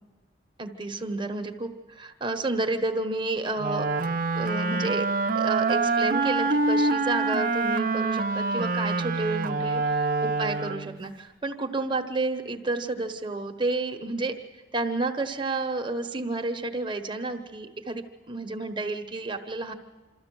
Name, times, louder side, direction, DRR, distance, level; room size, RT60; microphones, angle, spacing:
voice 1, 0.6-5.1 5.3-14.4 14.7-19.7, right 2 dB, 30° right, 5 dB, 1.2 m, -31 dB
Wind instrument woodwind instrument, 3.6-11.0, right 3 dB, 50° right, 0.6 m, -26 dB
25.5 x 13.5 x 7.7 m, 1.3 s
head